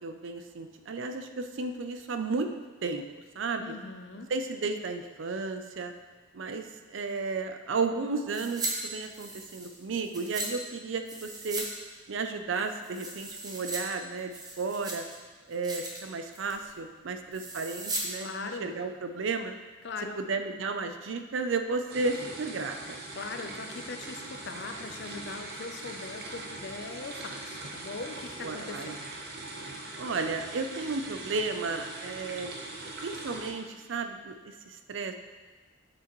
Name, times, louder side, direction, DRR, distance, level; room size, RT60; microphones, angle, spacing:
voice 1, 0.0-2.5 2.8-3.0 3.4-3.8 4.3-5.9 6.3-11.7 12.1-15.1 15.5-19.5 20.2-23.0 28.4-28.9 30.0-32.6 33.0-35.1, right 4 dB, 75° right, 7 dB, 0.5 m, -33 dB
voice 2, 3.6-4.3 18.2-18.7 19.8-20.2 23.1-29.1, left 3 dB, 60° left, 5 dB, 0.6 m, -40 dB
sound 1, 8.3-8.7 9.0-10.5 11.1-11.7 11.9-12.0 12.5-13.8 14.2-15.2 15.5-16.0 16.3-16.6 17.3-18.1 18.4-18.5, right 2 dB, 20° right, 0.8 m, -37 dB
sound 2, 21.9-33.5, right 2 dB, 55° right, 0.8 m, -41 dB
6.9 x 6.1 x 3.1 m, 1.4 s
head